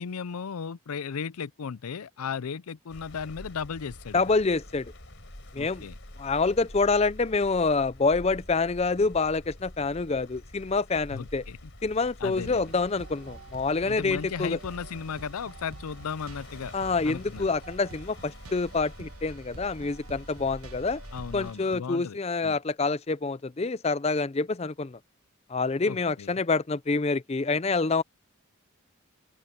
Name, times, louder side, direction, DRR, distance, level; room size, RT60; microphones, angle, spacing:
voice 1, 0.0-4.2 5.6-6.0 11.1-11.7 12.2-12.7 13.9-16.7 17.0-17.5 21.1-22.6 25.9-26.3, left 6 dB, 90° left, 0.5 m, -36 dB
sound 1, 2.9-21.5, left 1 dB, 55° left, 5.3 m, -47 dB
voice 2, 4.1-4.9 5.5-5.8 6.2-11.4 11.8-14.6 16.7-21.0 21.3-25.0 25.5-28.0, left 3 dB, 30° left, 0.5 m, -27 dB
sound 2, 12.3-21.8, right 3 dB, 90° right, 1.3 m, -48 dB
open air
head